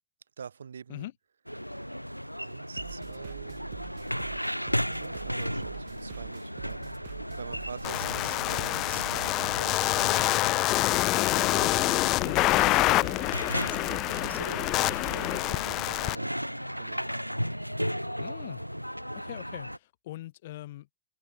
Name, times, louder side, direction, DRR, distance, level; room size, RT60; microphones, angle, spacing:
voice 1, 0.4-1.1 2.4-3.6 4.9-10.3 10.9-11.9 12.1-16.3 16.8-17.0, right 7 dB, 70° right, 5.5 m, -45 dB
sound 1, 1.5-19.8, equal, 90° right, 2.2 m, -36 dB
sound 2, 2.8-10.3, right 16 dB, 55° right, 2.1 m, -45 dB
sound 3, 7.8-16.2, left 18 dB, 40° left, 0.5 m, -26 dB
voice 2, 18.2-18.7 19.1-21.0, left 15 dB, 55° left, 2.5 m, -41 dB
figure-of-eight pair, 90°, 0 cm